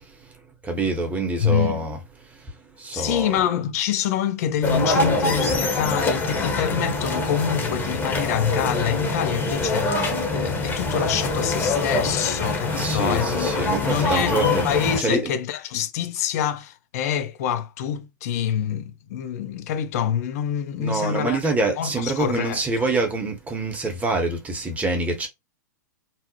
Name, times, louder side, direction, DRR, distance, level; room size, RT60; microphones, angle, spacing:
voice 1, 0.6-2.0 2.4-2.5 2.8-3.4 12.8-14.6 15.0-15.2 20.8-25.3, right 3 dB, 15° right, 0.8 m, -25 dB
voice 2, 1.4-1.8 2.9-21.4 21.8-22.9, left 9 dB, 55° left, 0.5 m, -26 dB
sound 1, 4.6-15.0, left 2 dB, 20° left, 0.8 m, -24 dB
2.7 x 2.0 x 2.7 m
hypercardioid pair, 105°, 10 cm